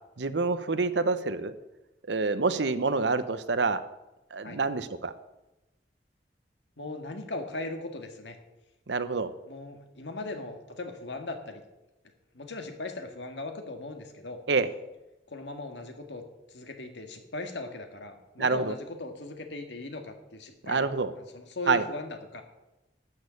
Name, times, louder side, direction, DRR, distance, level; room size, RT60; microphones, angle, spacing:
voice 1, 0.2-1.5 2.1-3.8 4.3-5.1 8.9-9.3 14.5-14.7 18.4-18.7 20.7-21.1 21.7-21.8, right 4 dB, 80° right, 12 dB, 0.8 m, -27 dB
voice 2, 6.8-8.4 9.5-11.6 12.3-14.4 15.3-20.9 21.2-22.4, left 2 dB, 85° left, 5 dB, 1.8 m, -39 dB
11.5 x 6.5 x 8.4 m, 0.98 s
head